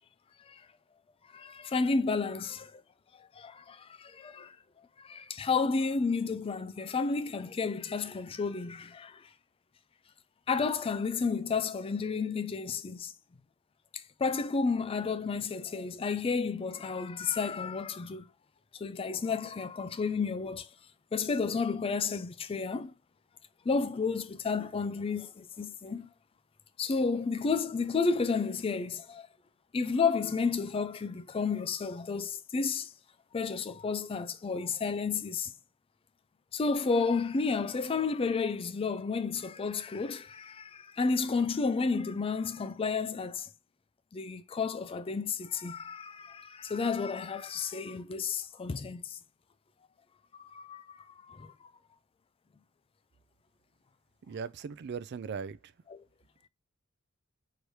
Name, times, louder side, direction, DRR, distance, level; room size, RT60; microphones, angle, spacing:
voice 1, 1.3-2.8 3.4-4.6 5.0-9.2 10.5-13.1 13.9-18.2 18.8-20.7 21.1-22.9 23.7-26.1 26.8-29.3 29.7-32.9 33.3-35.5 36.5-43.5 44.1-49.2 50.4-51.5 55.9-56.0, left 4 dB, 25° left, 0.3 m, -31 dB
voice 2, 54.3-55.7, right 6 dB, 50° right, 0.4 m, -39 dB
4.8 x 3.1 x 2.7 m
head